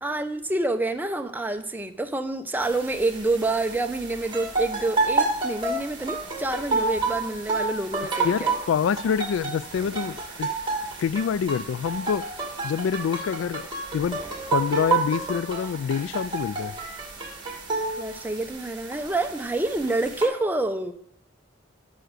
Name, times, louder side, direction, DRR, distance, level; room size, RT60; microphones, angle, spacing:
voice 1, 0.0-8.5 18.0-20.9, right 2 dB, 10° right, 0.7 m, -27 dB
sound 1, 2.6-20.3, right 3 dB, 25° right, 2.2 m, -30 dB
voice 2, 8.2-10.5 11.0-12.3 12.6-14.2 14.5-16.7, left 7 dB, 80° left, 0.3 m, -26 dB
9.2 x 6.2 x 6.6 m
head